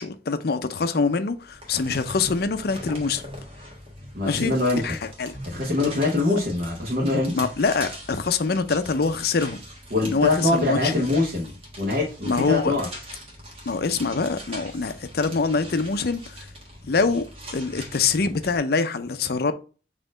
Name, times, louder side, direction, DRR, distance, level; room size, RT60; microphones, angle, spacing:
voice 1, 0.0-3.2 4.3-5.4 7.3-9.6 10.0-11.0 12.3-12.7 13.7-16.4 16.8-19.5, left 4 dB, 55° left, 0.5 m, -25 dB
sound 1, 1.3-18.6, equal, 30° right, 1.2 m, -41 dB
voice 2, 4.1-5.0 5.4-7.3 9.9-12.9, left 2 dB, 50° right, 1.1 m, -23 dB
4.3 x 2.9 x 3.7 m
head